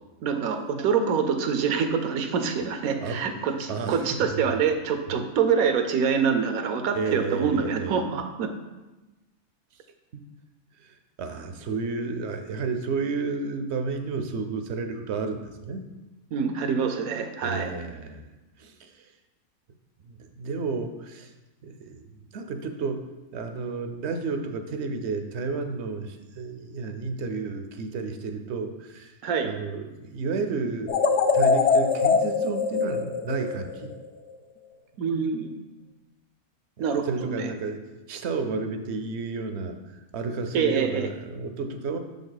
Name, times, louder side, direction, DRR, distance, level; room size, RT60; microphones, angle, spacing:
voice 1, 0.2-8.5 16.3-17.7 29.2-29.5 35.0-35.7 36.8-37.5 40.5-41.1, right 6 dB, 80° right, 7 dB, 1.1 m, -25 dB
voice 2, 3.0-4.2 6.9-8.0 10.1-10.2 10.8-15.9 17.4-18.3 18.6-19.1 20.1-21.3 21.6-22.0 22.3-29.2 29.4-30.9 31.3-33.9 36.8-39.8 40.1-42.0, right 4 dB, 60° right, 7 dB, 0.8 m, -32 dB
sound 1, 30.9-34.1, left 5 dB, 65° left, 0.7 m, -23 dB
6.8 x 5.3 x 3.9 m, 1.1 s
omnidirectional pair, 1.5 m